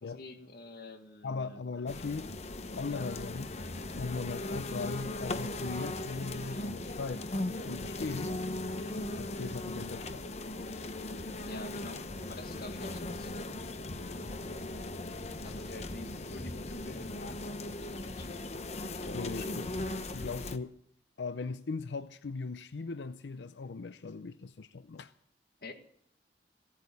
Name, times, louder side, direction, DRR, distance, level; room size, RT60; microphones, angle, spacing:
voice 1, 0.0-1.7 2.9-3.1 8.2-8.4 11.4-13.5 15.4-18.4 19.0-19.8 25.6-25.7, left 2 dB, 60° left, 1.9 m, -47 dB
voice 2, 1.2-2.3 2.8-3.5 3.9-7.3 7.6-8.3 9.2-10.3 19.1-19.7 20.1-20.8 21.2-25.1, left 4 dB, 90° left, 0.6 m, -39 dB
sound 1, 1.9-20.6, left 2 dB, 40° left, 0.9 m, -38 dB
16.5 x 8.4 x 9.7 m
head